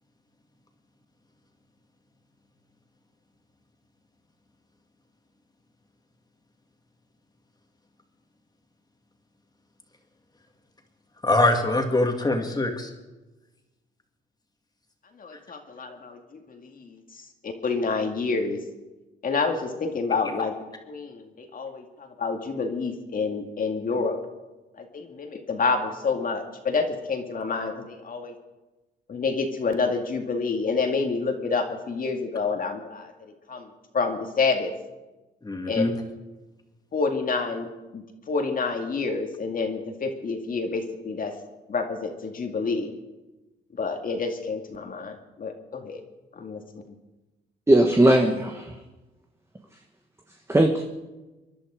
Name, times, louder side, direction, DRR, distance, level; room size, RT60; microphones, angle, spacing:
voice 1, 11.2-12.9 35.4-35.9, left 2 dB, 20° left, 3 dB, 2.6 m, -23 dB
voice 2, 15.2-18.6 19.2-20.5 20.9-24.2 24.8-28.3 29.1-33.1 33.5-34.7 35.7-35.9 36.9-37.7 37.9-41.3 41.7-42.9 43.8-46.0 46.4-47.0, left 4 dB, 45° left, 4 dB, 2.2 m, -28 dB
voice 3, 47.7-48.8 50.5-50.8, right 1 dB, 15° right, 3 dB, 1.4 m, -19 dB
25.5 x 11.0 x 5.0 m, 1.1 s
cardioid pair, 90°, 20 cm